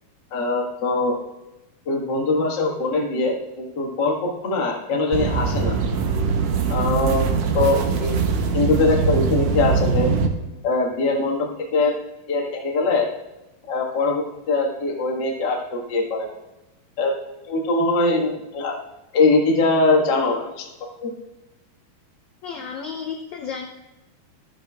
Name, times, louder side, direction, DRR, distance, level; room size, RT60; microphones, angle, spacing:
voice 1, 0.3-1.2 1.8-5.8 6.7-8.2 8.5-10.1 10.6-11.9 12.3-13.1 13.7-16.3 17.0-17.1 17.5-18.8 19.1-20.7 21.0-21.1, left 3 dB, 45° left, -1 dB, 1.5 m, -22 dB
sound 1, 5.1-10.3, right 5 dB, 70° right, 1.6 m, -22 dB
voice 2, 22.4-23.7, left 6 dB, 70° left, 2 dB, 1.8 m, -32 dB
14.0 x 12.0 x 2.4 m, 1.0 s
omnidirectional pair, 4.2 m